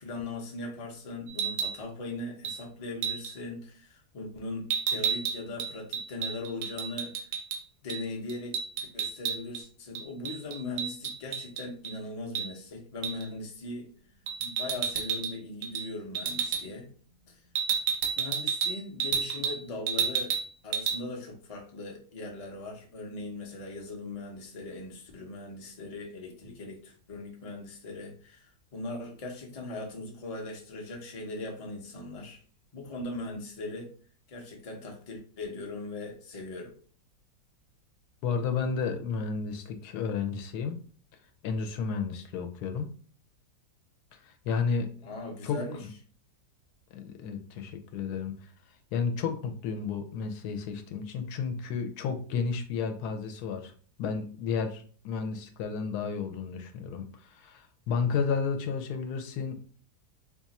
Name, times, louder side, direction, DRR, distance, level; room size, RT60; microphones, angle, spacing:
voice 1, 0.0-7.3 7.8-8.6 8.9-13.9 14.4-16.9 17.3-17.4 18.1-20.4 20.6-32.4 32.7-33.9 34.3-36.7 45.0-45.9, left 2 dB, 40° left, 0 dB, 0.5 m, -39 dB
sound 1, 1.3-1.8 2.4-2.6 3.0-3.3 4.7-7.6 7.9-8.0 8.3-9.6 9.9-11.9 12.3-12.5 13.0-13.3 14.3-15.3 15.6-15.9 16.1-16.6 17.5-19.6 19.9-20.5 20.7-21.0, right 7 dB, 65° right, 0.9 m, -31 dB
voice 2, 38.2-40.8 41.4-42.9 44.2-44.9 45.4-45.6 46.9-48.3 48.9-53.7 54.0-59.6, left 5 dB, 75° left, 6 dB, 1.1 m, -32 dB
2.8 x 2.4 x 4.0 m, 0.44 s
omnidirectional pair, 1.7 m